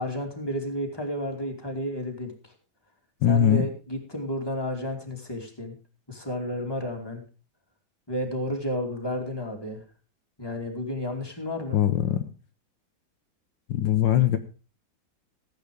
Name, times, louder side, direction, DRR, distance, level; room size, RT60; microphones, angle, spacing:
voice 1, 0.0-2.5 3.3-5.7 6.1-7.2 8.1-9.8 10.4-11.8, left 1 dB, 10° left, 2 dB, 2.8 m, -32 dB
voice 2, 3.2-3.7 11.7-12.2 13.7-14.4, left 10 dB, 70° left, 8 dB, 1.5 m, -21 dB
15.5 x 8.7 x 5.0 m, 0.35 s
omnidirectional pair, 2.2 m